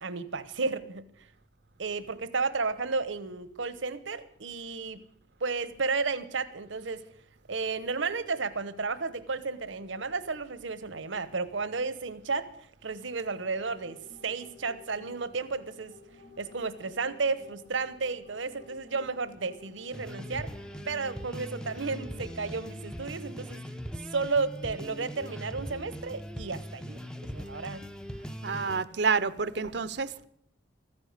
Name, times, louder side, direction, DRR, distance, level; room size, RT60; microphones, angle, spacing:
voice 1, 0.0-1.0 1.8-5.0 5.4-7.0 7.5-12.5 12.8-14.0 14.2-15.9 16.4-20.5 20.9-23.6 24.1-27.8, right 4 dB, 80° right, 1.0 m, -33 dB
sound 1, 13.0-22.4, left 3 dB, 50° left, 1.8 m, -54 dB
sound 2, 19.9-28.8, equal, 5° left, 0.5 m, -40 dB
voice 2, 28.4-30.3, right 5 dB, 60° right, 0.6 m, -29 dB
14.5 x 9.8 x 8.1 m
head